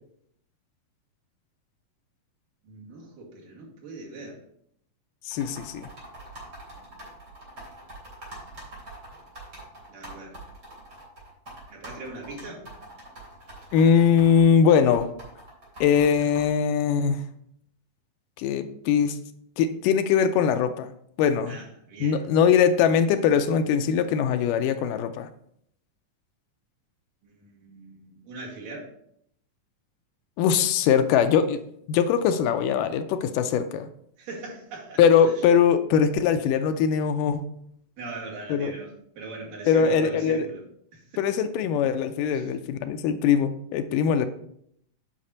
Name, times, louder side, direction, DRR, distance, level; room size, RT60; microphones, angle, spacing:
voice 1, 2.6-4.4 6.7-7.0 9.9-10.3 11.7-12.6 21.5-22.2 27.2-28.9 34.2-35.3 38.0-40.6 40.9-41.2 42.3-42.5, right 3 dB, 75° right, -4 dB, 3.9 m, -41 dB
voice 2, 5.3-5.9 13.7-15.1 15.8-17.2 18.4-19.2 19.6-20.9 21.2-21.6 22.0-25.3 30.4-31.6 31.9-33.9 35.0-37.5 38.5-38.7 39.7-40.5 41.2-44.3, left 7 dB, 80° left, 9 dB, 2.2 m, -21 dB
sound 1, 5.3-16.5, right 1 dB, 30° right, 3.6 m, -44 dB
8.8 x 5.7 x 4.1 m, 0.69 s
omnidirectional pair, 3.9 m